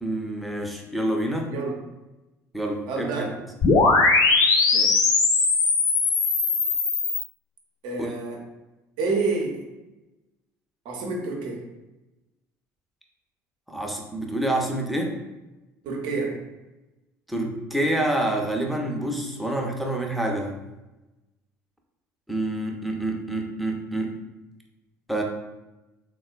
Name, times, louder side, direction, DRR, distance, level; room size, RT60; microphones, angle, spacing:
voice 1, 0.0-1.5 2.5-3.3 8.0-8.1 13.7-15.2 17.3-20.6 22.3-24.2 25.1-25.2, right 1 dB, ahead, 1 dB, 0.5 m, -27 dB
voice 2, 2.9-3.3 4.7-5.0 7.8-8.4 9.0-9.6 10.8-11.6 15.8-16.4, right 3 dB, 60° right, 0 dB, 0.7 m, -28 dB
sound 1, 3.6-7.2, left 3 dB, 45° left, 0.5 m, -20 dB
3.6 x 2.2 x 2.4 m, 1.0 s
figure-of-eight pair, 60°, 9 cm